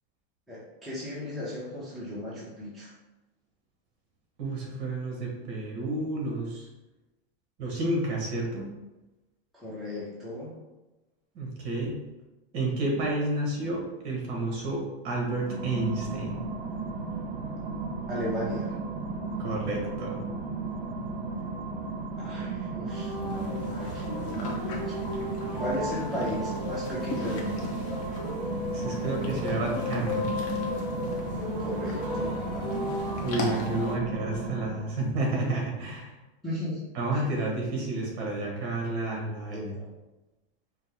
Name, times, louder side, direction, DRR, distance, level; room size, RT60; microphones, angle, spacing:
voice 1, 0.5-2.9 9.5-10.6 18.1-18.7 22.2-25.0 25.6-27.7 31.6-32.4 36.4-37.2 39.5-39.9, left 1 dB, ahead, -9 dB, 0.7 m, -36 dB
voice 2, 4.4-6.7 7.6-8.7 11.3-12.0 12.5-16.4 19.4-20.3 28.7-30.4 33.2-36.1 36.9-39.7, right 2 dB, 45° right, -1 dB, 1.4 m, -30 dB
sound 1, 15.3-35.0, right 3 dB, 70° right, 0.9 m, -34 dB
sound 2, 22.9-34.0, left 3 dB, 45° left, 0.9 m, -35 dB
5.2 x 2.2 x 3.5 m, 1.1 s
supercardioid pair, 150°, 31 cm